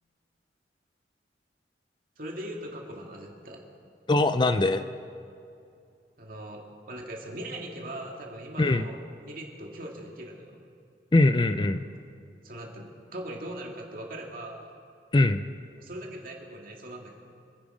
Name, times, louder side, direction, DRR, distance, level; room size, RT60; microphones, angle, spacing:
voice 1, 2.2-3.6 6.2-9.0 9.2-10.5 11.5-11.7 12.4-14.7 15.8-17.1, right 1 dB, 50° right, 0 dB, 2.4 m, -40 dB
voice 2, 4.1-4.8 8.6-8.9 11.1-11.8 15.1-15.4, left 2 dB, 25° left, 11 dB, 0.4 m, -22 dB
27.0 x 10.0 x 5.0 m, 2.5 s
head